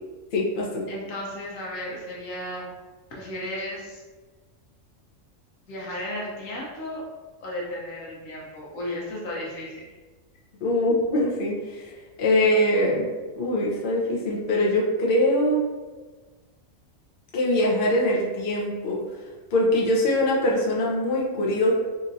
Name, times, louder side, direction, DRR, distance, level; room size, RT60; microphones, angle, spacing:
voice 1, 0.3-0.8 10.6-11.9 12.2-13.0 13.3-15.6 17.3-19.0 19.5-21.7, left 1 dB, 50° left, -4 dB, 0.8 m, -23 dB
voice 2, 0.9-2.7 3.1-4.0 5.7-7.1 7.4-9.8, left 1 dB, 80° left, -4 dB, 1.3 m, -34 dB
4.3 x 2.5 x 2.6 m, 1.4 s
omnidirectional pair, 1.4 m